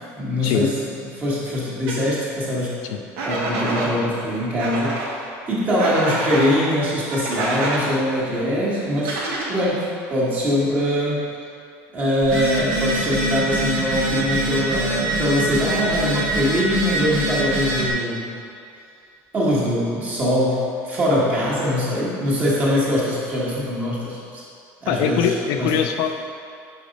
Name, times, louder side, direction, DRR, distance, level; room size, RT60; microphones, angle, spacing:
voice 1, 0.1-0.8 1.0-9.2 9.5-11.3 11.9-18.4 19.3-24.4 24.8-25.8, equal, 25° right, -6 dB, 1.4 m, -23 dB
sound 1, 1.9-2.0 3.2-3.9 4.6-5.1 5.8-6.5 7.1-7.8 9.0-9.7, right 2 dB, 85° right, 1.4 m, -26 dB
Telephone, 12.2-17.9, right 2 dB, 55° right, 1.1 m, -24 dB
voice 2, 24.9-26.3, left 7 dB, 65° left, 5 dB, 0.4 m, -22 dB
5.1 x 4.9 x 5.2 m, 2.5 s
cardioid pair, 175°, 7 cm